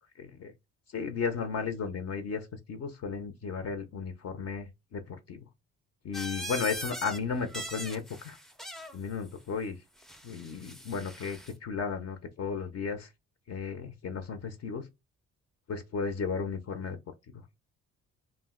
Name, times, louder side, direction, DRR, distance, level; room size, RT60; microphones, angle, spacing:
voice 1, 0.2-0.5 0.9-5.4 6.0-8.4 8.9-9.8 10.2-13.1 13.5-14.9 15.7-17.0, left 5 dB, 55° left, 0.6 m, -34 dB
sound 1, 6.1-7.2 7.5-9.0 10.0-11.5, equal, ahead, 0.4 m, -41 dB
2.4 x 2.1 x 3.6 m
cardioid pair, 90°, 30 cm